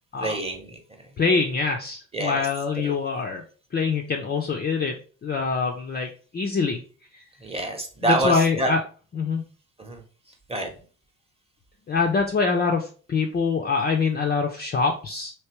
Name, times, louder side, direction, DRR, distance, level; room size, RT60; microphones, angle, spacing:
voice 1, 0.2-0.8 2.1-2.5 2.8-3.0 7.4-8.7 9.8-10.0 10.5-10.8, right 1 dB, 15° right, 3 dB, 0.9 m, -27 dB
voice 2, 1.2-3.4 3.7-6.8 7.1-7.2 8.0-8.8 9.1-9.4 11.9-15.3, left 4 dB, 25° left, 1 dB, 0.5 m, -24 dB
3.3 x 2.8 x 2.9 m, 0.39 s
hypercardioid pair, 55°, 41 cm